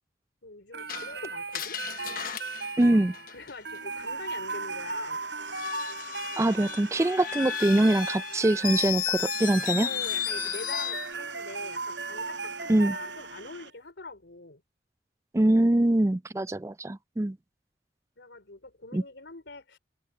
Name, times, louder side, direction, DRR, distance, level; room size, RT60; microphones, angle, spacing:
voice 1, 0.4-1.8 3.3-5.2 9.8-14.6 18.2-19.8, left 3 dB, 80° left, 4.0 m, -43 dB
sound 1, 0.7-13.5, right 4 dB, 75° right, 6.3 m, -37 dB
Screech, 0.9-3.8 5.4-11.1, left 10 dB, 50° left, 1.1 m, -34 dB
voice 2, 2.8-3.1 6.4-9.9 12.7-12.9 15.3-17.4 18.9-19.0, right 1 dB, 15° right, 0.4 m, -23 dB
sound 2, 3.4-13.7, right 4 dB, 90° right, 6.8 m, -46 dB
head